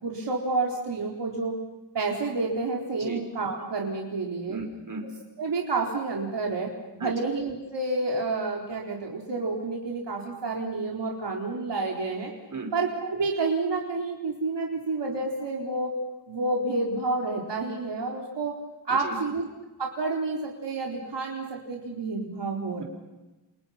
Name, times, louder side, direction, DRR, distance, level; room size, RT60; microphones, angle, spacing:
voice 1, 0.0-1.6 1.9-4.6 5.4-12.3 12.7-16.0 16.3-18.6 18.9-19.4 19.8-22.8, right 3 dB, 80° right, -1 dB, 4.1 m, -29 dB
voice 2, 4.5-5.1 7.0-7.1 12.5-12.7 18.9-19.2 22.8-22.9, right 3 dB, 45° right, 3 dB, 5.7 m, -36 dB
29.5 x 28.5 x 5.8 m, 1.1 s
wide cardioid pair, 105°, 42 cm